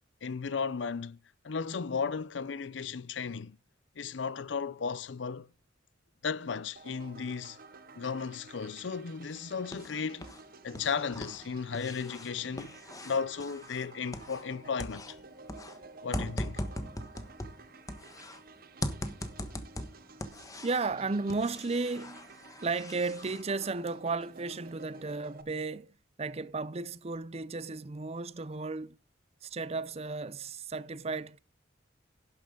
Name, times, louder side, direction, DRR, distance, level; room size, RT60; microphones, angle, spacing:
voice 1, 0.2-1.2 1.4-3.6 4.0-5.5 6.2-7.6 8.0-10.3 10.6-12.7 13.0-15.2 16.0-16.6, left 5 dB, 75° left, 0.6 m, -35 dB
sound 1, 6.8-25.4, right 4 dB, 50° right, 1.1 m, -52 dB
sound 2, 9.3-10.4 10.7-14.5 14.8-18.4 18.8-20.9 21.3-23.4, left 1 dB, 20° left, 1.2 m, -40 dB
voice 2, 20.6-22.3 22.6-25.9 26.2-29.0 29.4-31.4, right 3 dB, 35° right, 0.6 m, -34 dB
11.5 x 10.5 x 3.8 m
head